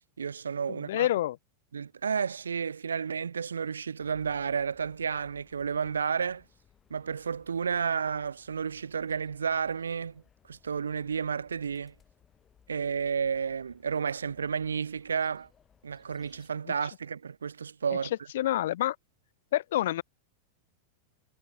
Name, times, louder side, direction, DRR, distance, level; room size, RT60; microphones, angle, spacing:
voice 1, 0.2-1.1 1.7-6.4 6.9-10.2 10.5-11.9 12.7-15.5 15.8-18.1, right 6 dB, 70° right, 0.5 m, -31 dB
voice 2, 0.7-1.4 18.3-19.0 19.5-20.0, left 13 dB, 55° left, 0.4 m, -27 dB
sound 1, 4.0-16.5, left 7 dB, 20° left, 6.3 m, -64 dB
figure-of-eight pair, 90°, 0 cm